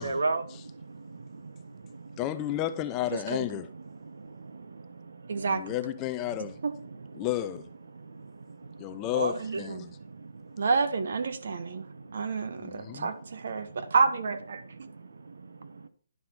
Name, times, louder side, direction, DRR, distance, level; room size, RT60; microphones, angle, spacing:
voice 1, 0.0-2.3 3.7-5.7 6.6-7.3 7.9-10.7 11.3-13.9 14.6-15.9, right 3 dB, 85° right, 1.1 m, -39 dB
voice 2, 2.2-3.7 5.5-6.6 7.2-7.7 8.8-10.0 12.6-13.1, left 14 dB, 15° left, 0.4 m, -32 dB
voice 3, 3.1-3.5 5.3-5.6 6.6-6.7 9.4-9.8 10.6-11.8 12.1-14.9, right 4 dB, 60° right, 1.2 m, -29 dB
11.0 x 3.7 x 5.8 m
hypercardioid pair, 170°, 0 cm